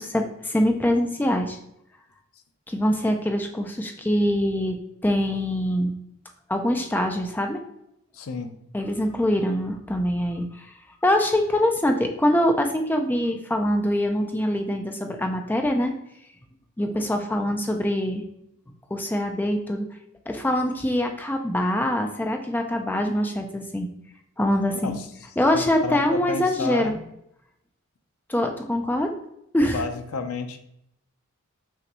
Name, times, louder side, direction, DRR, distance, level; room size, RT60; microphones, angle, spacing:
voice 1, 0.0-1.6 2.7-5.9 6.5-7.6 8.7-10.7 11.0-15.9 16.8-18.2 18.9-19.9 20.3-23.9 24.4-25.0 25.4-27.0 28.3-29.2 29.5-29.8, left 1 dB, 10° left, 4 dB, 0.3 m, -24 dB
voice 2, 8.1-8.6 24.8-25.1 25.5-26.9 29.7-30.6, left 4 dB, 75° left, 7 dB, 0.6 m, -31 dB
5.8 x 3.1 x 3.0 m, 0.78 s
head